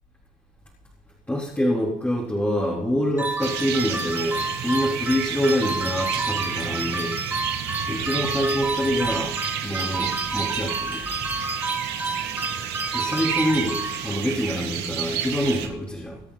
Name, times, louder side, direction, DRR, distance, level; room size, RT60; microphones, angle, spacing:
voice 1, 1.3-7.2 7.9-9.3 9.6-11.0 12.9-16.2, equal, 10° left, -6 dB, 3.8 m, -26 dB
sound 1, 3.2-14.4, right 2 dB, 10° right, 1.8 m, -30 dB
sound 2, 3.4-15.7, right 9 dB, 85° right, 2.2 m, -31 dB
24.5 x 8.3 x 4.2 m, 0.90 s
cardioid pair, 110°, 17 cm